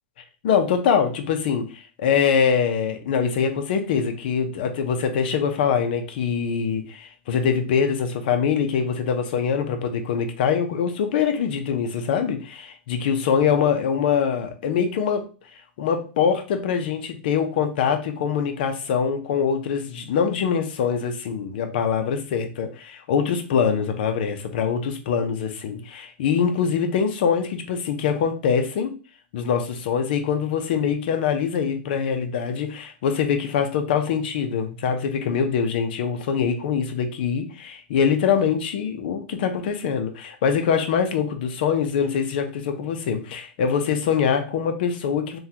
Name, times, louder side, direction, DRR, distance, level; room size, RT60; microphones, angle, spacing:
voice 1, 0.4-15.2 15.8-28.9 29.3-45.4, left 7 dB, 50° left, 6 dB, 0.6 m, -23 dB
3.6 x 2.3 x 2.8 m, 0.35 s
supercardioid pair, 170°, 7 cm